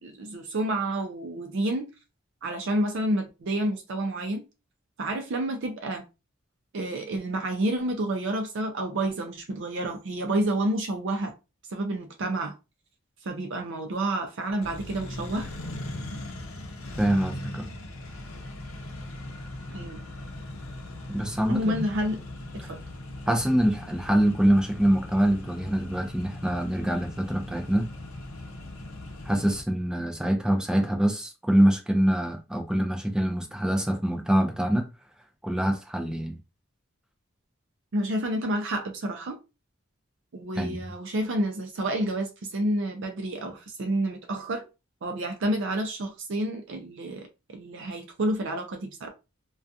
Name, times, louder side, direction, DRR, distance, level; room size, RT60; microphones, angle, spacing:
voice 1, 0.0-1.9 2.4-4.4 5.0-6.0 6.7-11.3 11.7-12.5 13.2-15.5 19.7-20.0 21.5-22.2 22.5-22.8 37.9-39.4 40.3-44.6 45.0-49.1, right 1 dB, 60° right, 0.5 m, -29 dB
Accelerating revving vroom, 14.6-29.6, left 1 dB, 70° left, 0.6 m, -39 dB
voice 2, 17.0-17.7 21.1-21.8 23.3-27.9 29.3-34.9 35.4-36.4 40.6-40.8, right 1 dB, 5° right, 0.4 m, -24 dB
2.4 x 2.2 x 2.6 m
head